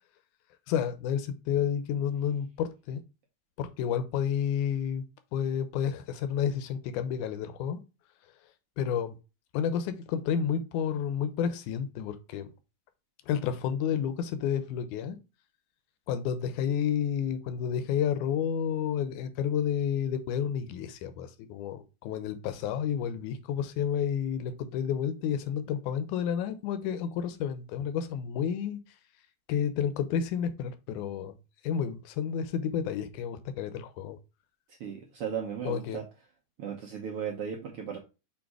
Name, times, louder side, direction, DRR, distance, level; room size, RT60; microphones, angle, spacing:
voice 1, 0.7-3.0 3.6-5.0 5.3-7.8 8.8-9.2 9.5-12.5 13.3-15.2 16.1-28.8 29.5-31.3 31.6-34.2 35.7-36.0, left 8 dB, 85° left, 10 dB, 2.2 m, -30 dB
voice 2, 34.8-36.1 36.6-38.0, right 7 dB, 70° right, 1 dB, 1.4 m, -36 dB
6.4 x 3.3 x 4.7 m, 0.29 s
omnidirectional pair, 3.5 m